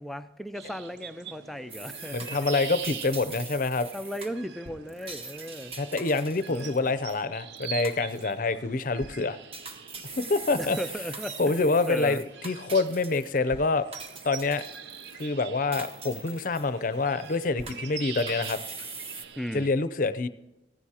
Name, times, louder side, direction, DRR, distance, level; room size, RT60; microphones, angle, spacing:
voice 1, 0.0-2.4 3.9-5.7 6.5-6.7 10.6-11.6 11.9-12.2 19.4-19.7, equal, ahead, 10 dB, 0.3 m, -36 dB
sound 1, 0.6-19.7, right 7 dB, 70° right, 0.6 m, -44 dB
sound 2, 1.7-7.2 7.6-8.3 8.8-9.1 9.5-13.6 13.9-15.3 15.7-16.9 17.2-19.2, right 3 dB, 35° right, 1.2 m, -42 dB
voice 2, 2.1-3.9 5.8-9.4 10.2-10.8 11.4-13.9 14.2-14.6 15.2-18.6 19.5-20.3, left 3 dB, 50° left, 13 dB, 0.6 m, -26 dB
15.5 x 14.5 x 2.9 m, 1.0 s
head